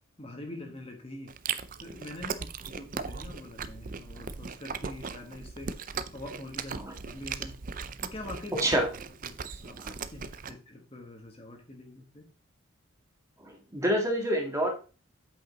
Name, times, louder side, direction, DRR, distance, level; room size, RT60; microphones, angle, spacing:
voice 1, 0.2-1.3 1.8-5.7 6.1-6.8 7.0-7.5 8.0-8.6 9.2-9.4 9.6-12.3, left 1 dB, 25° left, 3 dB, 1.4 m, -44 dB
Chewing mastication, 1.3-10.5, right 6 dB, 40° right, 0.5 m, -38 dB
voice 2, 8.5-8.9 9.7-9.9 13.4-14.7, equal, 15° right, 1 dB, 1.8 m, -28 dB
8.3 x 5.6 x 4.0 m, 0.35 s
head